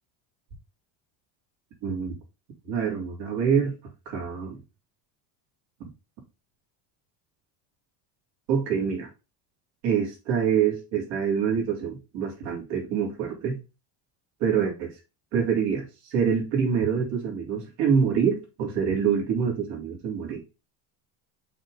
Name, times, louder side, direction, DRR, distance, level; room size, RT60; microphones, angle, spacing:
voice 1, 1.8-2.1 2.7-3.7 4.0-4.6 8.5-9.1 9.8-13.6 14.4-14.9 15.3-20.4, right 7 dB, 65° right, 0 dB, 3.3 m, -26 dB
6.3 x 4.0 x 4.9 m, 0.28 s
cardioid pair, 160°, 44 cm